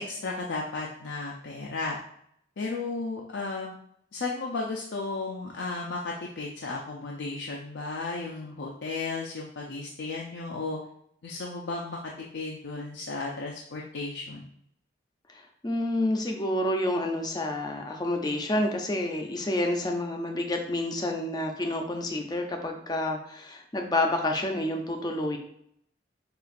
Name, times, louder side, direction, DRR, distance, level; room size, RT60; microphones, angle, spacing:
voice 1, 0.0-2.0 2.6-3.8 4.1-10.8 11.2-14.4, left 3 dB, 90° left, -2 dB, 0.5 m, -34 dB
voice 2, 15.3-25.4, left 1 dB, 20° left, 3 dB, 0.5 m, -29 dB
6.7 x 2.4 x 2.5 m, 0.71 s
head